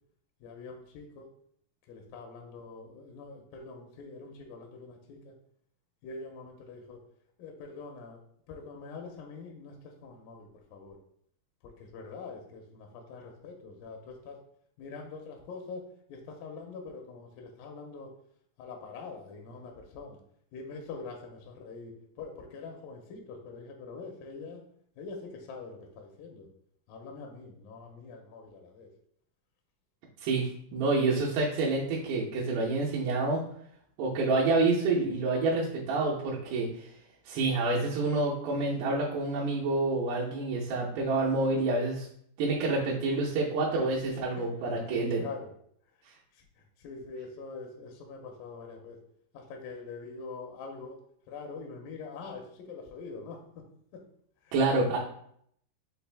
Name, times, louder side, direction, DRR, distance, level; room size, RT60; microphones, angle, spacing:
voice 1, 0.4-1.3 1.9-5.3 6.0-7.0 7.4-11.0 11.6-14.4 14.8-15.8 16.1-18.1 18.6-20.2 20.5-24.6 25.0-26.5 26.9-28.9 44.4-44.5 44.9-45.5 46.3-49.0 49.3-51.0 51.3-53.6 54.4-54.5, left 4 dB, 80° left, 1 dB, 2.0 m, -44 dB
voice 2, 30.7-33.4 34.0-36.9 37.3-42.1 42.4-45.2 54.5-55.0, right 3 dB, 80° right, -5 dB, 2.9 m, -28 dB
6.3 x 2.5 x 3.3 m, 0.66 s
omnidirectional pair, 4.7 m